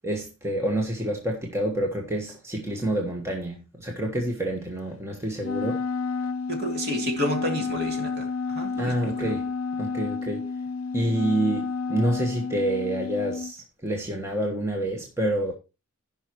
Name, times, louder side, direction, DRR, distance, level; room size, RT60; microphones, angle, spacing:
voice 1, 0.0-5.8 8.8-9.5 9.8-10.5 10.9-15.5, right 1 dB, 10° right, 1.3 m, -28 dB
Wind instrument woodwind instrument, 5.4-13.5, left 4 dB, 75° left, 0.6 m, -30 dB
voice 2, 6.5-9.3, equal, 50° right, 2.7 m, -30 dB
16.0 x 5.6 x 3.0 m
head